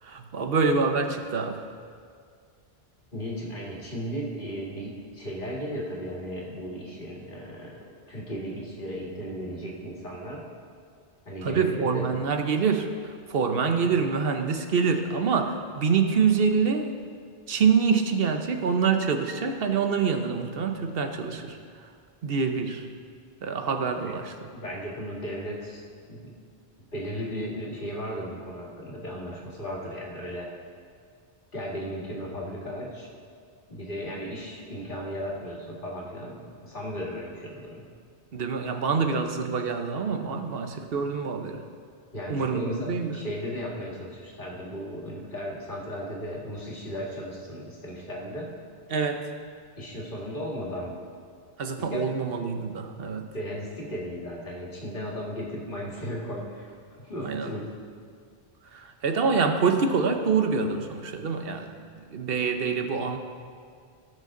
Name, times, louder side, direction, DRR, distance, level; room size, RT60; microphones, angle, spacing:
voice 1, 0.0-1.7 11.4-17.0 17.5-21.9 22.2-22.9 23.4-24.5 38.3-41.6 42.3-43.2 48.9-49.3 51.6-53.3 57.2-57.5 58.7-61.8 62.1-63.2, right 5 dB, 65° right, 6 dB, 1.1 m, -26 dB
voice 2, 3.1-10.5 11.3-12.1 23.9-24.0 24.5-25.8 26.1-26.3 26.9-30.5 31.5-33.1 33.7-37.9 42.1-48.5 49.8-51.0 51.8-52.0 53.3-56.7 57.0-57.7, equal, 55° left, -4 dB, 2.2 m, -35 dB
18.5 x 6.6 x 3.8 m, 2.2 s
omnidirectional pair, 1.1 m